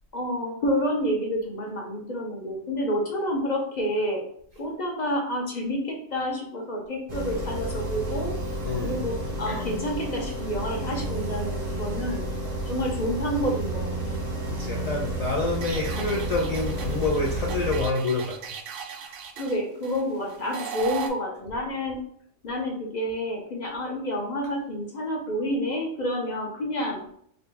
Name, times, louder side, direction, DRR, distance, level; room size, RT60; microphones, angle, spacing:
voice 1, 0.1-4.2 4.6-8.4 8.8-12.3 12.7-14.2 19.4-22.0 22.4-27.0, equal, 45° left, 0 dB, 0.6 m, -29 dB
sound 1, 7.1-17.8, right 2 dB, 45° right, 0.6 m, -31 dB
voice 2, 8.6-9.0 14.5-18.6, left 3 dB, 75° left, -1 dB, 0.3 m, -27 dB
sound 2, 15.5-21.1, right 7 dB, 80° right, 0.9 m, -37 dB
3.9 x 2.2 x 3.3 m, 0.66 s
omnidirectional pair, 1.3 m